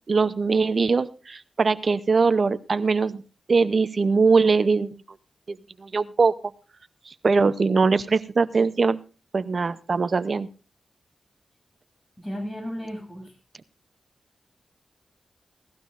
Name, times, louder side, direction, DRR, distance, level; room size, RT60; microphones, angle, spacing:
voice 1, 0.1-3.2 3.5-5.0 5.5-6.5 7.1-9.0 9.3-10.5, right 4 dB, 50° right, 14 dB, 0.7 m, -22 dB
voice 2, 12.2-13.4, equal, 20° left, 2 dB, 7.5 m, -34 dB
18.0 x 14.5 x 2.5 m, 0.33 s
wide cardioid pair, 85°, 0 cm